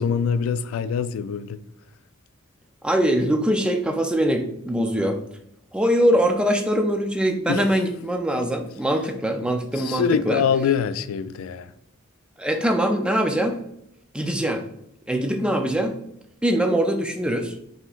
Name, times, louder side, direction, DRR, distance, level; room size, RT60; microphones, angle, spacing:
voice 1, 0.0-1.6 7.5-7.6 9.8-11.7, left 7 dB, 85° left, 0.3 m, -24 dB
voice 2, 2.8-5.2 5.7-10.4 12.4-13.6 14.1-14.6 15.1-15.9 16.4-17.5, equal, 5° right, 0.4 m, -22 dB
5.5 x 2.9 x 2.4 m
head